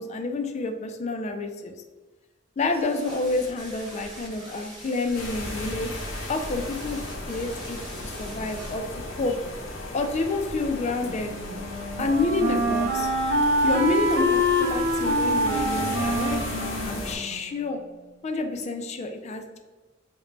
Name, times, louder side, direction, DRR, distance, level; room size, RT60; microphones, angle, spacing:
voice 1, 0.0-1.8 2.6-5.9 6.3-8.8 9.2-9.4 9.9-11.3 12.0-13.1 13.6-17.8 18.2-19.6, left 3 dB, 35° left, 5 dB, 0.3 m, -28 dB
sound 1, 2.7-8.7, equal, 20° right, 1.4 m, -43 dB
sound 2, 5.1-17.2, left 1 dB, 70° left, 0.7 m, -35 dB
Wind instrument woodwind instrument, 11.0-17.9, equal, 65° right, 0.5 m, -26 dB
3.8 x 2.2 x 3.1 m, 1.3 s
head